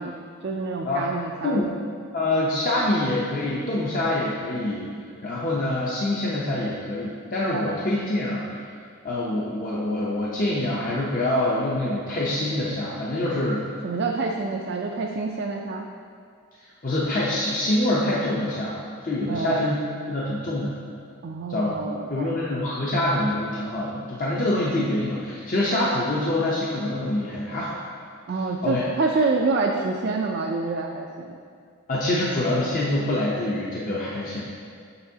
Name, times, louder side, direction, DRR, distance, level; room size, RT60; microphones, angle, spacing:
voice 1, 0.0-1.6 7.5-7.8 13.8-15.9 19.3-19.7 21.2-22.4 28.3-31.4, right 3 dB, 50° right, 0 dB, 0.4 m, -27 dB
voice 2, 2.1-4.9 5.2-8.6 9.0-13.6 16.8-18.8 19.0-19.8 20.1-20.7 21.5-21.7 22.1-27.8 28.6-28.9 31.9-34.4, left 1 dB, 40° left, -6 dB, 0.6 m, -25 dB
6.9 x 6.8 x 2.8 m, 2.2 s
head